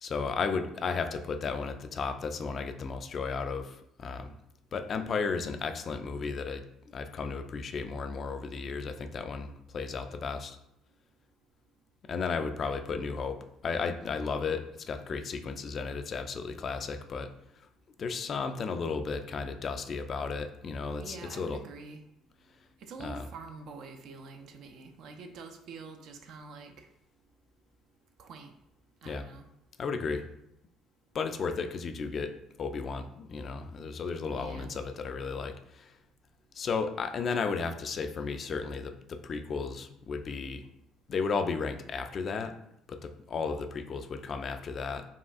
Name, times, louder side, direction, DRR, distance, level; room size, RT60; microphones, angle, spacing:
voice 1, 0.0-4.3 4.7-10.6 12.1-17.3 18.0-21.6 23.0-23.3 29.1-29.2 29.8-30.3 31.1-35.9 36.5-40.7 41.1-42.5 42.9-45.1, left 5 dB, 40° left, 7 dB, 0.3 m, -34 dB
voice 2, 21.0-22.0 22.8-26.9 28.2-28.5 29.0-29.4 34.4-34.7, right 4 dB, 55° right, 5 dB, 0.4 m, -46 dB
5.4 x 2.3 x 2.4 m, 0.78 s
figure-of-eight pair, 50°, 0 cm